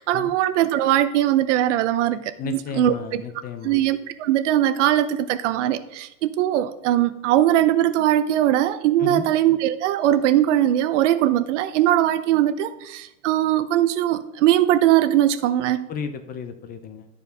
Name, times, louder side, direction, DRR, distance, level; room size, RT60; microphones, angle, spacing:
voice 1, 0.0-3.2 3.6-15.9, right 12 dB, 65° right, 13 dB, 0.8 m, -20 dB
voice 2, 2.4-3.8 9.0-9.3 15.9-17.1, left 7 dB, 25° left, 8 dB, 0.7 m, -33 dB
12.5 x 4.8 x 5.1 m, 0.87 s
supercardioid pair, 145°, 38 cm